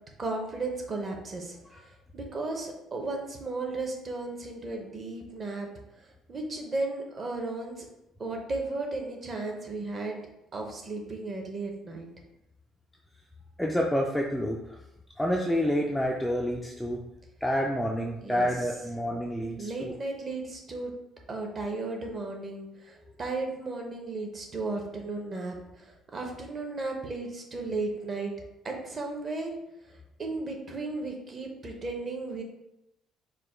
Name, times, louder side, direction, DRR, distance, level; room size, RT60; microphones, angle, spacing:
voice 1, 0.2-1.6 2.1-5.7 6.3-7.9 8.2-12.1 18.2-18.5 19.6-20.9 21.3-28.3 28.6-29.5 29.9-32.4, right 3 dB, 25° right, 1 dB, 0.7 m, -35 dB
voice 2, 13.6-14.8 15.2-17.0 17.4-19.9, equal, ahead, -1 dB, 0.3 m, -28 dB
4.9 x 2.2 x 4.3 m, 0.89 s
cardioid pair, 170°, 0 cm